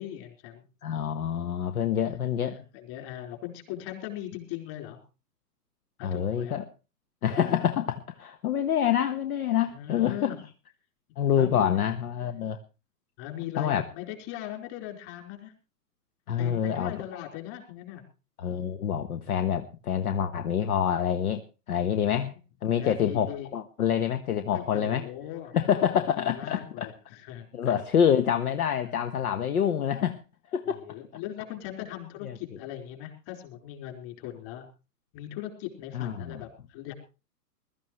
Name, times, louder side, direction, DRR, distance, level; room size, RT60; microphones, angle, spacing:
voice 1, 0.0-0.6 2.0-5.0 6.0-6.6 9.7-10.4 11.4-11.7 13.2-15.5 16.4-18.0 22.8-23.5 24.5-25.5 26.2-27.7 28.8-29.1 30.7-34.7 35.1-36.9, left 12 dB, 35° left, 4 dB, 4.5 m, -39 dB
voice 2, 0.8-2.6 6.0-6.6 7.2-10.3 11.2-12.6 13.6-13.9 16.3-16.9 18.4-21.4 21.7-22.3 22.6-25.1 25.5-26.9 27.5-30.2 30.5-30.8 32.2-32.4 35.9-36.4, left 9 dB, 60° left, 9 dB, 1.4 m, -26 dB
21.5 x 13.0 x 3.2 m, 0.31 s
hypercardioid pair, 130°, 49 cm